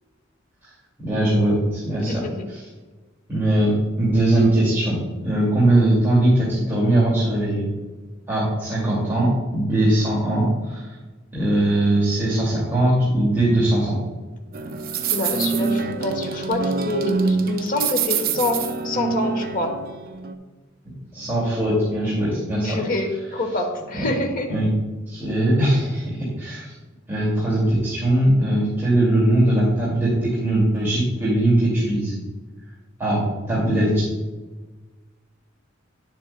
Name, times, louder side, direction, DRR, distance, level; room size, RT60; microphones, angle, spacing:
voice 1, 1.0-2.2 2.5-2.7 3.3-7.7 8.3-11.0 11.3-14.0 20.8-22.8 23.9-24.0 24.5-24.7 25.1-26.7 27.1-32.1 33.0-33.2 33.5-34.0, right 1 dB, 10° right, -9 dB, 2.2 m, -20 dB
sound 1, 14.5-20.3, right 4 dB, 45° right, 0.5 m, -25 dB
voice 2, 15.1-18.6 18.8-19.7 22.6-24.5, left 2 dB, 45° left, 2 dB, 1.1 m, -26 dB
10.5 x 7.4 x 2.2 m, 1.3 s
head